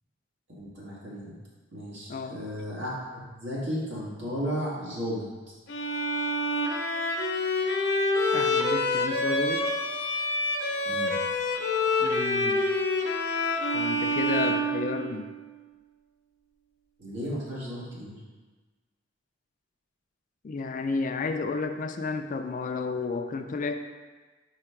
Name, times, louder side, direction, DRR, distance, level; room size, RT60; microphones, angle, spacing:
voice 1, 0.5-1.3 1.7-5.3 10.9-11.1 17.0-18.1, equal, 80° right, -6 dB, 2.0 m, -34 dB
voice 2, 2.1-2.4 8.3-9.7 12.0-12.7 13.7-15.3 20.4-23.8, left 4 dB, 45° left, 6 dB, 0.4 m, -32 dB
Bowed string instrument, 5.7-15.4, left 1 dB, 65° left, 0.8 m, -27 dB
4.9 x 4.8 x 4.5 m, 1.3 s
head